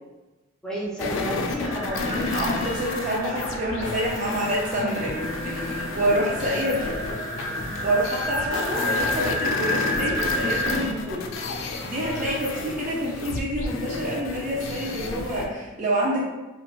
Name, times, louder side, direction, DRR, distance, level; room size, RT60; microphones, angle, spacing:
voice 1, 0.6-2.3 6.5-6.6 7.1-7.2, equal, 5° left, -6 dB, 0.7 m, -31 dB
sound 1, 1.0-15.5, left 3 dB, 80° left, 0.4 m, -32 dB
sound 2, 1.6-10.7, left 1 dB, 70° right, 1.1 m, -31 dB
voice 2, 2.1-7.0 7.8-11.3 11.6-16.2, right 1 dB, 40° right, -3 dB, 0.5 m, -27 dB
3.7 x 2.3 x 2.3 m, 1.1 s
head